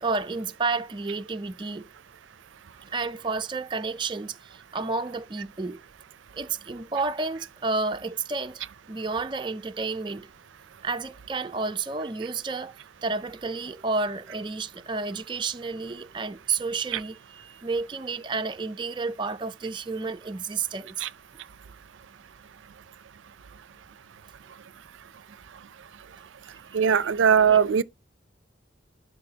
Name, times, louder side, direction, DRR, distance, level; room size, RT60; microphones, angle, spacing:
voice 1, 0.0-1.9 2.9-5.8 6.4-10.3 10.8-12.7 13.0-21.1 27.5-27.6, right 4 dB, 25° right, 0.4 m, -31 dB
voice 2, 26.7-27.8, right 7 dB, 85° right, 0.4 m, -20 dB
12.0 x 4.7 x 2.8 m
head